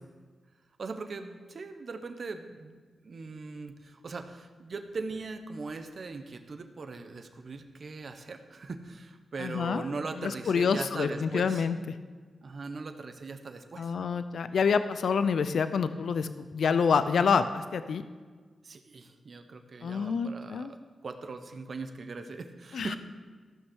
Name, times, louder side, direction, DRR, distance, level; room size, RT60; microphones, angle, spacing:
voice 1, 0.8-11.7 12.4-13.9 18.6-23.0, right 4 dB, 60° right, 7 dB, 1.1 m, -40 dB
voice 2, 9.4-9.9 10.2-12.0 13.8-18.0 19.8-20.7 22.7-23.0, left 6 dB, 75° left, 11 dB, 0.5 m, -27 dB
14.0 x 6.2 x 6.4 m, 1.5 s
cardioid pair, 50°, 0 cm